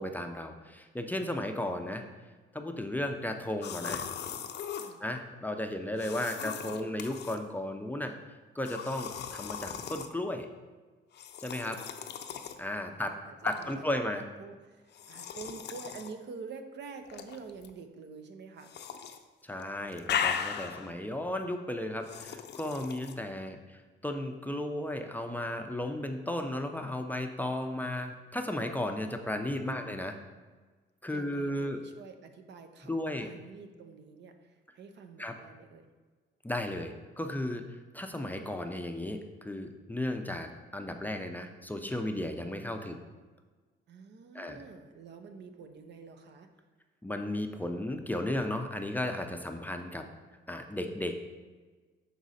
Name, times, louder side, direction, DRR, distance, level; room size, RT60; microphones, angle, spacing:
voice 1, 0.0-2.0 2.5-4.1 5.0-8.2 8.5-10.5 11.4-11.8 12.6-13.2 13.4-14.2 19.4-30.1 31.0-31.8 32.8-33.3 35.2-35.3 36.4-43.0 44.3-44.6 47.0-50.0 50.5-51.2, left 1 dB, 10° left, 4 dB, 0.5 m, -35 dB
sound 1, 3.6-4.9 6.0-7.4 8.7-10.1 11.1-12.6 13.5-13.7 14.9-16.1 17.1-17.7 18.6-19.2 19.5-20.9 22.0-23.1, left 8 dB, 60° left, 0.5 m, -37 dB
voice 2, 4.7-5.0 12.5-18.7 29.6-30.1 31.0-35.9 42.8-43.1 43.9-46.5, right 5 dB, 60° right, 7 dB, 0.7 m, -48 dB
6.2 x 4.0 x 4.1 m, 1.4 s
cardioid pair, 90°, 20 cm